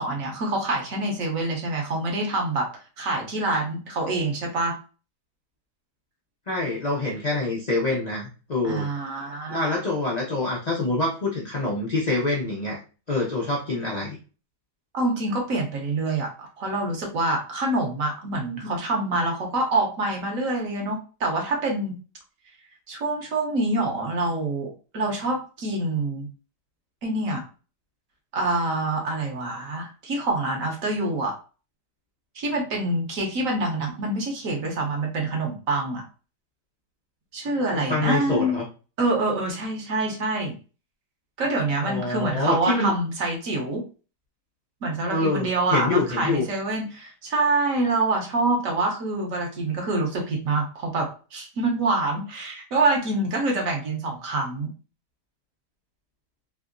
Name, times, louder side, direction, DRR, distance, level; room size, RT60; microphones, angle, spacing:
voice 1, 0.0-2.7 3.0-4.8 8.6-9.8 14.9-22.0 22.9-26.3 27.0-27.4 28.3-31.3 32.3-36.0 37.3-38.6 39.0-40.5 41.4-43.8 44.8-54.7, right 2 dB, 60° right, 1 dB, 1.1 m, -26 dB
voice 2, 6.5-8.9 9.5-12.8 13.1-14.2 37.7-38.6 41.8-42.9 45.1-46.5, left 2 dB, 80° left, -4 dB, 0.3 m, -26 dB
3.3 x 2.7 x 2.5 m, 0.35 s
omnidirectional pair, 1.8 m